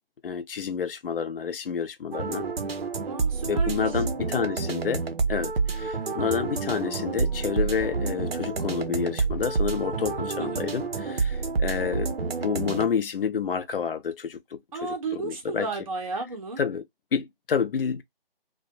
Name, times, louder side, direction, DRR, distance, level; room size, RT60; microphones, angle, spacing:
voice 1, 0.2-2.4 3.4-5.0 5.3-15.7 16.6-16.8 17.1-18.0, left 6 dB, 65° left, 0.5 m, -29 dB
sound 1, 2.1-12.9, right 4 dB, 85° right, 0.6 m, -28 dB
voice 2, 3.1-3.8 10.4-10.6 14.7-16.6, right 3 dB, 35° right, 0.5 m, -33 dB
sound 2, 6.3-12.3, left 3 dB, 5° right, 0.8 m, -45 dB
2.3 x 2.1 x 2.5 m
figure-of-eight pair, 155°, 30 cm